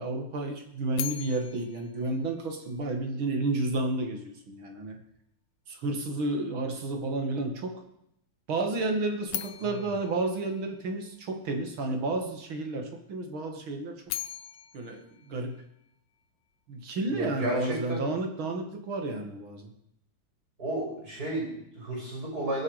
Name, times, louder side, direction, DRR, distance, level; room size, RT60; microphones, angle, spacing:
voice 1, 0.0-5.0 5.7-7.8 8.5-14.0 14.7-15.6 16.7-19.7, right 2 dB, 70° right, 4 dB, 2.9 m, -31 dB
sound 1, 1.0-3.1 9.3-11.4 13.8-16.2, left 12 dB, 85° left, 1.6 m, -40 dB
voice 2, 17.1-18.0 20.6-22.6, right 1 dB, 45° right, -2 dB, 7.0 m, -33 dB
22.0 x 8.7 x 5.0 m, 0.77 s
omnidirectional pair, 2.4 m